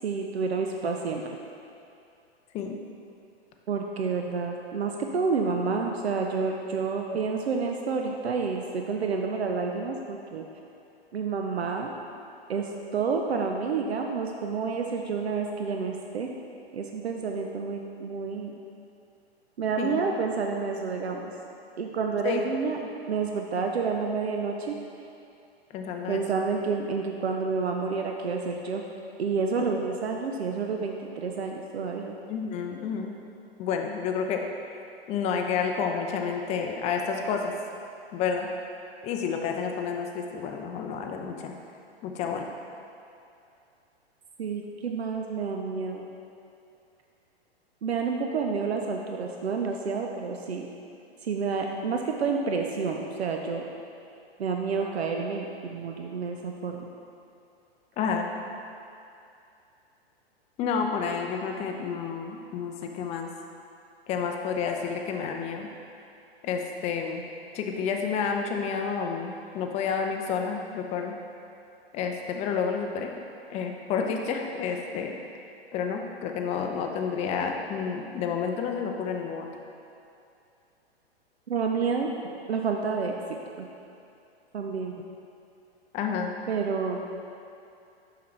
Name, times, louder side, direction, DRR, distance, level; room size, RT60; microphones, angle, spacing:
voice 1, 0.0-1.4 3.7-10.4 11.1-11.9 12.5-16.3 16.7-18.5 19.6-21.3 21.8-24.8 26.1-28.8 29.2-32.2 44.4-46.1 47.8-50.7 51.2-53.7 54.4-56.8 81.5-82.1 82.5-83.1 83.6-83.7 84.5-85.0 86.5-87.1, right 5 dB, 80° right, 2 dB, 0.6 m, -29 dB
voice 2, 25.7-26.2 29.6-29.8 32.3-33.1 33.6-34.4 35.1-37.5 38.1-38.5 39.0-41.5 42.0-42.5 58.0-58.3 60.6-63.3 64.1-65.7 66.4-67.2 67.5-71.1 71.9-73.1 73.5-75.1 75.7-79.5 85.9-86.3, left 6 dB, 20° left, 3 dB, 0.5 m, -30 dB
6.7 x 5.8 x 3.3 m, 2.6 s
figure-of-eight pair, 110°, 31 cm